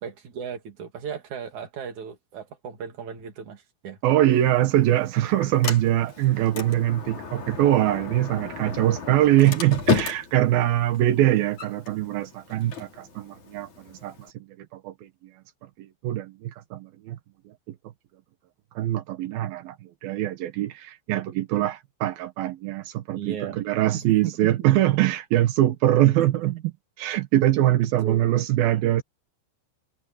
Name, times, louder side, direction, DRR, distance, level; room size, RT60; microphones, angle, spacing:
voice 1, 0.0-4.0 23.2-23.6 23.9-24.3 26.2-26.6 28.0-28.3, right 8 dB, 45° right, 3.5 m, -35 dB
voice 2, 4.0-15.3 15.8-17.2 17.5-17.8 18.7-26.5 27.0-29.0, right 14 dB, 75° right, 2.2 m, -23 dB
Sliding door, 4.3-14.3, left 5 dB, 35° left, 5.4 m, -34 dB
omnidirectional pair, 5.9 m